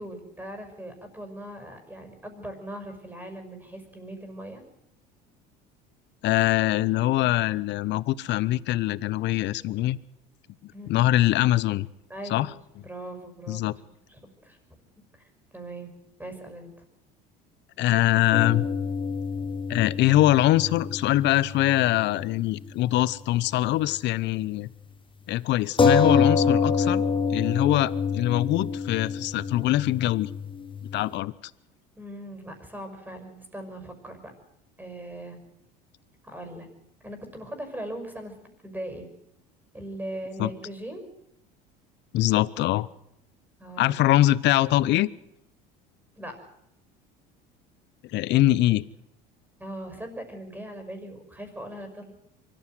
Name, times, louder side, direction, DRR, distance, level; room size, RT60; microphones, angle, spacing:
voice 1, 0.0-4.6 10.7-11.1 12.1-12.5 12.8-13.7 14.1-14.6 15.5-15.9 16.2-16.8 19.3-19.6 32.0-34.3 34.8-35.4 36.2-36.7 37.0-38.3 38.6-39.1 39.7-41.1 43.6-44.0 46.2-46.4 49.6-52.1, right 1 dB, 10° right, 6 dB, 5.9 m, -39 dB
voice 2, 6.2-10.0 10.6-11.9 12.3-12.5 13.5-13.7 17.8-18.6 19.7-24.7 25.3-27.0 27.3-30.3 30.9-31.3 40.4-40.5 42.1-42.9 43.8-45.1 48.1-48.8, left 15 dB, 55° left, 21 dB, 0.8 m, -23 dB
sound 1, 18.3-22.2 22.5-22.6 25.8-31.0, left 5 dB, 25° left, 1.7 m, -26 dB
24.0 x 14.0 x 7.9 m, 0.80 s
hypercardioid pair, 80°, 21 cm